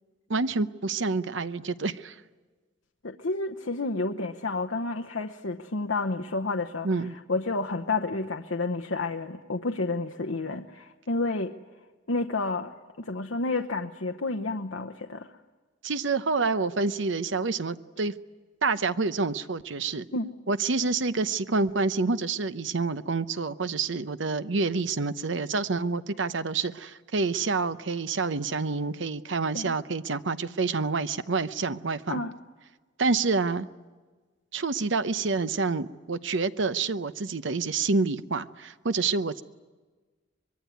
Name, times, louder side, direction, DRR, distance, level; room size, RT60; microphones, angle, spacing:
voice 1, 0.3-2.1 6.8-7.2 15.8-18.1 18.6-20.1 20.5-32.2 33.0-33.7 34.5-39.4, right 4 dB, 70° right, 12 dB, 0.8 m, -28 dB
voice 2, 3.0-6.9 7.3-11.5 12.1-12.7 13.1-15.3 20.1-20.3 29.5-29.8 32.1-32.3, left 3 dB, 80° left, 5 dB, 1.0 m, -30 dB
24.0 x 22.0 x 9.5 m, 1.3 s
head